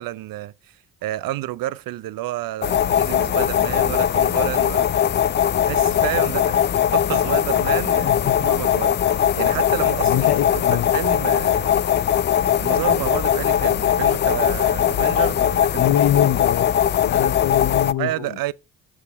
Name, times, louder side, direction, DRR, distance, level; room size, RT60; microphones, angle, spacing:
voice 1, 0.0-4.9 5.4-10.3 10.5-11.7 12.6-15.9 18.0-18.5, right 15 dB, 50° right, 0.5 m, -30 dB
sound 1, 2.6-17.9, left 10 dB, 25° left, 0.3 m, -20 dB
voice 2, 8.0-8.3 10.0-10.9 15.7-16.7 17.0-18.4, left 11 dB, 55° left, 0.8 m, -23 dB
7.1 x 6.4 x 4.0 m
hypercardioid pair, 45°, 45 cm